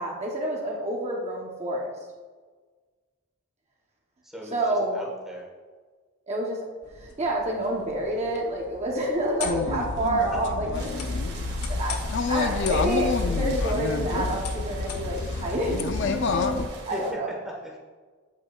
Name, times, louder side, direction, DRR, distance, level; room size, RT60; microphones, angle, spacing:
voice 1, 0.0-1.9 4.5-5.0 6.3-10.9 11.7-12.0 12.3-17.3, right 1 dB, 30° right, -2 dB, 0.9 m, -28 dB
voice 2, 4.2-5.5 16.9-17.2 17.4-17.8, equal, ahead, -2 dB, 1.4 m, -38 dB
sound 1, 6.8-15.3, left 7 dB, 90° left, 1.0 m, -42 dB
sound 2, 9.4-16.7, left 3 dB, 55° left, 0.5 m, -28 dB
sound 3, 10.7-17.1, right 3 dB, 45° right, 1.5 m, -44 dB
8.4 x 8.1 x 2.4 m, 1.4 s
head